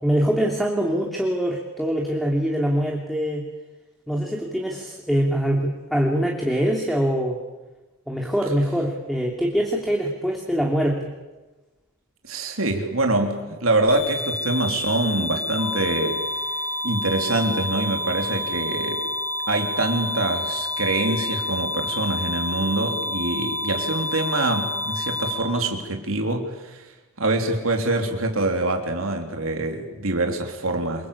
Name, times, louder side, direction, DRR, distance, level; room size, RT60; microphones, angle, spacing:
voice 1, 0.0-3.5 4.1-7.4 8.1-11.1, equal, ahead, 0 dB, 2.9 m, -23 dB
voice 2, 12.2-19.1 19.5-31.1, right 2 dB, 70° right, 3 dB, 3.6 m, -25 dB
sound 1, 13.9-25.3, left 1 dB, 45° right, 5.6 m, -29 dB
sound 2, 15.6-25.6, left 8 dB, 75° left, 3.4 m, -35 dB
28.0 x 25.0 x 8.6 m, 1.1 s
head